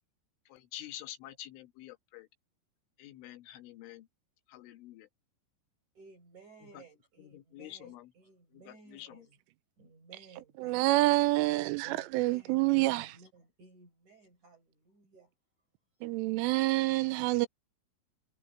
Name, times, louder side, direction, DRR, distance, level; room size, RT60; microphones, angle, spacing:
voice 1, 0.5-2.3 3.0-4.1 4.5-5.1 7.3-8.1 8.7-9.2, left 13 dB, 75° left, 3.8 m, -47 dB
voice 2, 5.9-9.4 9.8-15.3, right 4 dB, 40° right, 5.9 m, -57 dB
voice 3, 10.6-13.1 16.0-17.5, right 19 dB, 85° right, 3.3 m, -27 dB
omnidirectional pair, 5.8 m